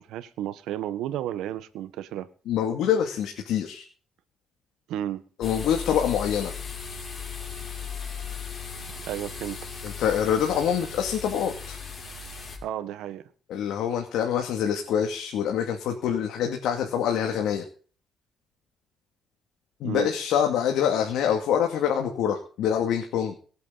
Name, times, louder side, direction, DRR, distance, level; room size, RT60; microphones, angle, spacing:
voice 1, 0.0-2.3 4.9-5.2 9.1-9.7 12.6-13.2 19.8-20.1, right 11 dB, 90° right, 1.3 m, -32 dB
voice 2, 2.5-3.8 5.4-6.5 9.8-11.8 13.5-17.7 19.8-23.3, left 8 dB, 85° left, 2.4 m, -25 dB
sound 1, 5.4-12.6, left 6 dB, 40° left, 6.2 m, -37 dB
24.0 x 8.4 x 4.0 m
cardioid pair, 90°, 0 cm